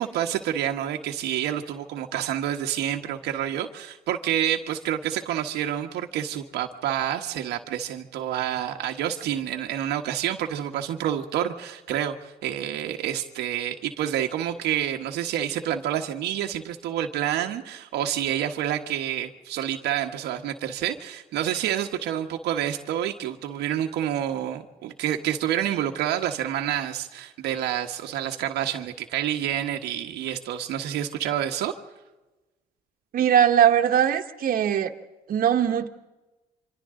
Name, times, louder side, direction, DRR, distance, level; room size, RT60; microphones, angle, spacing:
voice 1, 0.0-31.7, right 11 dB, 80° right, 3 dB, 1.3 m, -28 dB
voice 2, 33.1-34.9 35.3-35.9, right 9 dB, 55° right, 5 dB, 1.5 m, -20 dB
28.5 x 25.0 x 3.8 m, 1.1 s
cardioid pair, 110°, 17 cm